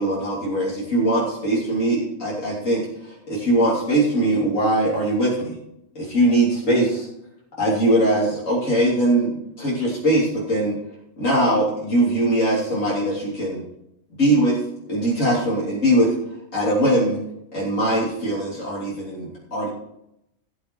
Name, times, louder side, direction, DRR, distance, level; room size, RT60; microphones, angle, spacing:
voice 1, 0.0-5.6 6.0-7.1 7.6-10.8 11.2-13.6 14.2-14.6 14.9-16.1 16.5-17.2 17.5-19.7, right 1 dB, 90° left, -7 dB, 3.7 m, -21 dB
17.0 x 6.5 x 4.6 m, 0.80 s
omnidirectional pair, 1.3 m